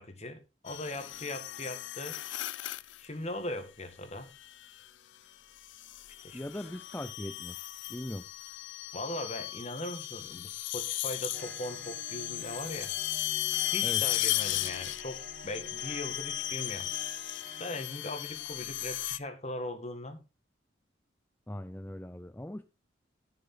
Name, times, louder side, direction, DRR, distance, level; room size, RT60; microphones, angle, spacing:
voice 1, 0.0-2.2 3.0-4.3 6.2-6.4 8.9-13.0 13.7-16.9 17.6-20.2, left 1 dB, 35° left, 1.8 m, -39 dB
sound 1, 0.7-3.0 4.4-4.8 5.6-19.2, left 15 dB, 75° left, 0.5 m, -36 dB
voice 2, 6.3-7.6 7.9-8.3 13.8-14.0 21.5-22.6, left 1 dB, 10° left, 0.5 m, -40 dB
sound 2, 11.3-17.8, equal, 45° right, 1.8 m, -49 dB
14.5 x 6.7 x 3.8 m
head